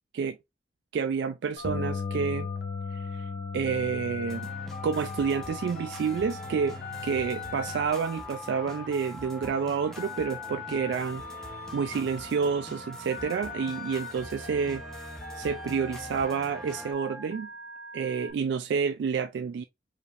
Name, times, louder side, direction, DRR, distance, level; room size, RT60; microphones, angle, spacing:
voice 1, 0.9-2.5 2.9-4.5 4.8-11.5 11.7-14.8 15.3-17.5 17.9-19.6, right 6 dB, 75° right, 0.3 m, -29 dB
Telephone, 1.6-18.3, left 4 dB, 75° left, 1.1 m, -41 dB
Bass guitar, 1.6-7.9, left 5 dB, 45° left, 0.9 m, -37 dB
sound 1, 4.3-16.9, equal, 5° left, 0.9 m, -45 dB
4.8 x 3.2 x 2.5 m
head